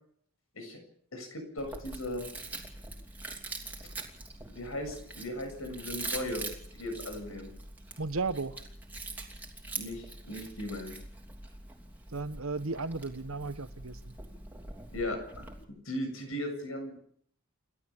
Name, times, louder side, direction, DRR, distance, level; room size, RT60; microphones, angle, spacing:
voice 1, 1.1-2.3 4.5-6.5 6.8-7.5 9.7-10.9 14.9-15.5 15.9-17.0, left 1 dB, 80° left, 7.3 m, -37 dB
Chewing mastication, 1.6-15.6, right 3 dB, 10° right, 2.9 m, -43 dB
voice 2, 8.0-8.6 12.1-14.1, right 3 dB, 85° right, 1.3 m, -34 dB
29.5 x 12.5 x 7.3 m
head